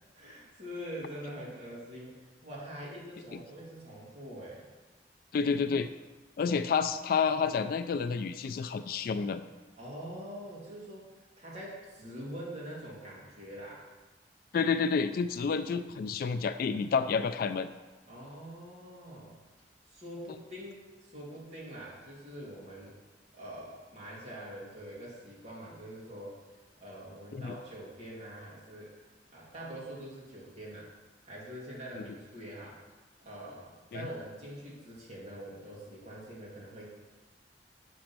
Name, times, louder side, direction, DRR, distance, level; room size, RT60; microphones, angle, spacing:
voice 1, 0.1-2.1 2.4-4.7 9.8-11.1 11.4-13.8 18.1-19.4 19.9-22.9 23.3-26.4 26.8-29.0 29.3-30.9 31.2-32.8 33.2-36.9, equal, 40° right, -6 dB, 2.2 m, -44 dB
voice 2, 5.3-5.9 6.4-9.4 14.5-17.7 27.3-27.5 33.9-34.1, left 5 dB, 55° left, 11 dB, 0.3 m, -29 dB
6.2 x 5.1 x 6.0 m, 1.2 s
head